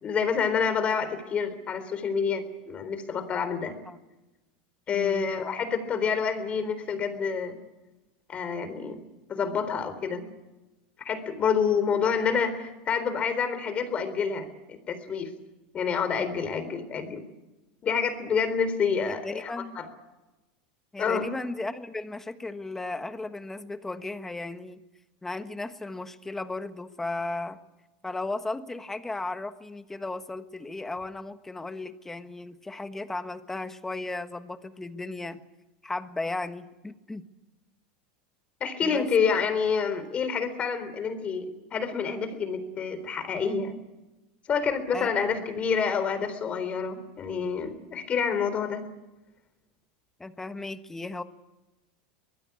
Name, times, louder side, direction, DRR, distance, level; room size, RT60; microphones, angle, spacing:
voice 1, 0.0-3.8 4.9-7.6 8.3-10.2 11.0-15.3 15.7-17.2 17.8-19.9 21.0-21.3 38.6-43.8 44.5-48.8, left 6 dB, 30° left, 10 dB, 3.8 m, -28 dB
voice 2, 4.9-5.2 16.2-16.3 19.0-19.8 20.9-24.8 25.2-27.6 28.0-35.4 35.8-37.2 38.8-39.1 44.9-45.3 50.2-51.2, left 2 dB, 10° left, 9 dB, 1.4 m, -35 dB
24.5 x 19.5 x 8.5 m, 1.0 s
supercardioid pair, 140°, 5 cm